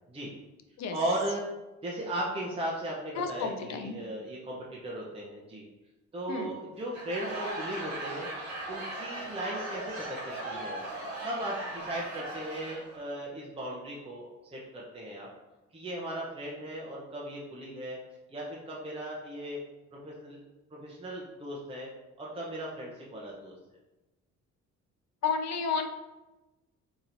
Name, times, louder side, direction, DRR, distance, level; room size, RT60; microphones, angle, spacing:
voice 1, 0.9-1.4 1.8-5.6 6.1-8.3 8.7-10.8 11.2-15.3 15.7-18.0 18.3-19.6 20.0-20.4 20.7-21.9 22.2-23.5, right 1 dB, 20° right, -4 dB, 0.6 m, -37 dB
voice 2, 3.2-3.9 6.3-6.5 25.2-25.9, left 5 dB, 60° left, 6 dB, 0.5 m, -31 dB
Laughter / Crowd, 6.8-13.0, right 1 dB, 65° right, 1.3 m, -38 dB
4.2 x 3.0 x 2.6 m, 1.1 s
cardioid pair, 90°, 30 cm